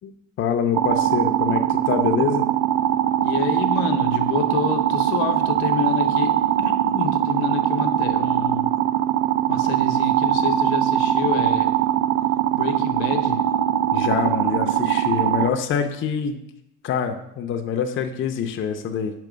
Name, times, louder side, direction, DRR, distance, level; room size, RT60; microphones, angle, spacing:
voice 1, 0.0-2.5 13.9-16.4 16.8-19.1, left 7 dB, 35° left, 6 dB, 0.5 m, -25 dB
sound 1, 0.7-15.5, right 11 dB, 60° right, 0.5 m, -21 dB
voice 2, 3.2-8.7 9.5-11.8 12.5-13.4, left 7 dB, 75° left, 7 dB, 0.8 m, -28 dB
6.7 x 2.9 x 5.1 m, 0.85 s
cardioid pair, 115°, 36 cm